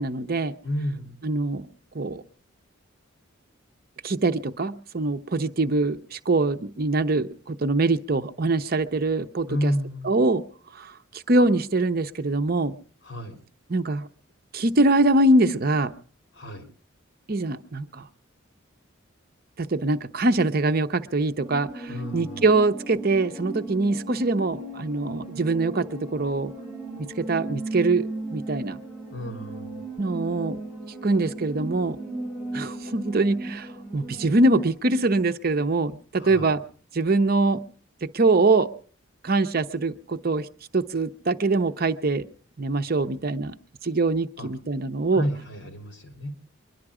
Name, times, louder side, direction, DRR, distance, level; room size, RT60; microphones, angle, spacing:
voice 1, 0.0-0.5 1.2-1.7 1.9-2.2 4.0-9.7 10.0-10.4 10.8-10.9 11.3-12.8 13.7-14.1 14.5-15.9 17.3-18.0 19.6-26.5 27.0-28.8 30.0-30.6 31.0-32.0 32.5-36.6 36.9-37.6 38.0-38.7 39.2-40.5 40.7-42.3 42.6-43.5 43.8-45.3, right 2 dB, 50° right, 9 dB, 0.7 m, -23 dB
voice 2, 0.6-1.2 9.5-10.1 13.0-13.4 16.3-16.7 21.9-22.4 29.1-29.8 36.2-36.6 44.4-44.5 45.1-46.3, equal, 60° left, 5 dB, 3.1 m, -31 dB
sound 1, 21.4-34.7, right 2 dB, 10° right, 5.5 m, -36 dB
23.5 x 11.0 x 4.9 m, 0.43 s
head